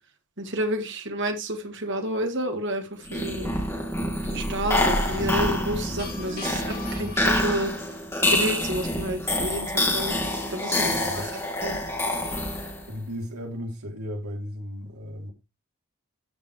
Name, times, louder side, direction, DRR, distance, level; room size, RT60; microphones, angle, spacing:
voice 1, 0.4-3.5 4.2-7.7 8.3-11.8, right 1 dB, 55° right, 1.8 m, -30 dB
sound 1, 3.0-12.9, left 1 dB, 10° left, 2.5 m, -27 dB
sound 2, 3.9-7.9, equal, 45° left, 3.2 m, -34 dB
voice 2, 10.8-11.3 12.9-15.3, equal, 85° right, 3.5 m, -35 dB
14.0 x 5.1 x 3.1 m
head